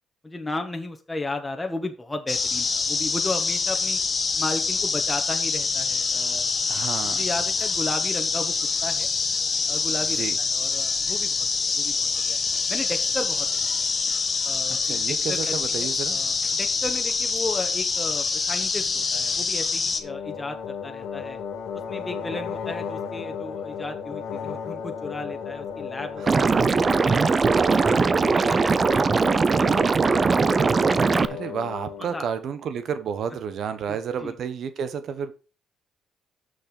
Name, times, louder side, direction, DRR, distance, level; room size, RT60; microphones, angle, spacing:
voice 1, 0.2-4.0 4.4-6.5 7.0-8.5 8.8-9.1 9.7-12.4 12.7-13.8 14.4-21.4 21.9-26.6 27.0-30.5 30.8-31.4 32.0-32.3 33.9-34.3, left 2 dB, 15° left, 4 dB, 1.3 m, -35 dB
sound 1, 2.3-20.0, left 4 dB, 35° left, 1.3 m, -25 dB
voice 2, 6.7-7.2 10.1-10.4 14.8-16.2 26.2-26.8 31.3-35.3, right 7 dB, 65° right, 11 dB, 1.3 m, -31 dB
sound 2, 20.0-32.2, left 6 dB, 75° left, 1.2 m, -35 dB
Liquid, 26.3-31.3, right 4 dB, 35° right, 0.6 m, -20 dB
6.5 x 6.5 x 6.2 m, 0.35 s
cardioid pair, 90°, 0 cm